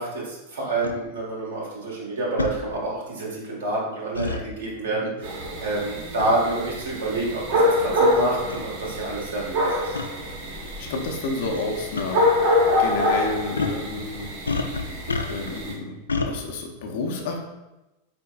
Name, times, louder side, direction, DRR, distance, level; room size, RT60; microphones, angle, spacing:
voice 1, 0.0-10.0, right 2 dB, 65° right, -4 dB, 1.5 m, -28 dB
sound 1, 0.8-1.0 2.4-2.6 4.2-4.4 6.2-6.4 7.2-7.3 8.1-8.2 8.5-8.6 10.0-10.1 11.4-11.6 12.0-12.1 13.6-13.8 14.5-15.6 16.1-16.3, left 4 dB, 75° left, 0.3 m, -27 dB
sound 2, 5.2-15.7, left 1 dB, 50° right, 1.1 m, -25 dB
voice 2, 10.8-12.3 12.8-14.3 15.3-16.0 16.2-17.4, left 3 dB, 50° left, 2 dB, 0.7 m, -30 dB
4.5 x 4.3 x 2.3 m, 1.0 s
figure-of-eight pair, 90°, 0 cm